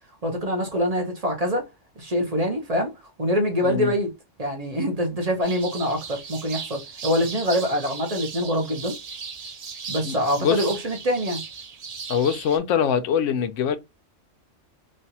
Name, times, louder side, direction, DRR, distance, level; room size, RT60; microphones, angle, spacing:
voice 1, 0.2-1.7 2.0-4.1 4.4-9.0 9.9-11.4, equal, 35° right, 0.8 m, -25 dB
sound 1, 5.4-12.6, right 5 dB, 50° right, 0.4 m, -37 dB
voice 2, 10.0-10.7 12.1-13.8, left 7 dB, 85° left, 0.9 m, -23 dB
3.2 x 2.4 x 2.7 m
omnidirectional pair, 1.2 m